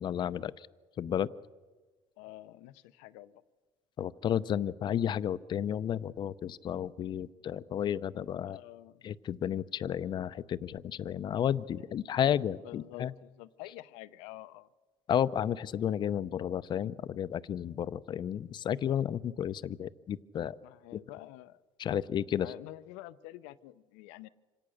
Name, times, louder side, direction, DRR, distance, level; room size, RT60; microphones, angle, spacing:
voice 1, 0.0-0.7 1.0-1.3 4.0-8.6 9.0-13.1 15.1-20.6 20.9-21.0 21.8-22.5, left 9 dB, 45° left, 15 dB, 0.6 m, -32 dB
voice 2, 2.2-3.4 8.4-9.0 12.6-14.7 20.6-21.6 22.4-24.3, left 16 dB, 90° left, 13 dB, 0.7 m, -48 dB
26.0 x 17.5 x 6.5 m, 1.3 s
cardioid pair, 110°, 11 cm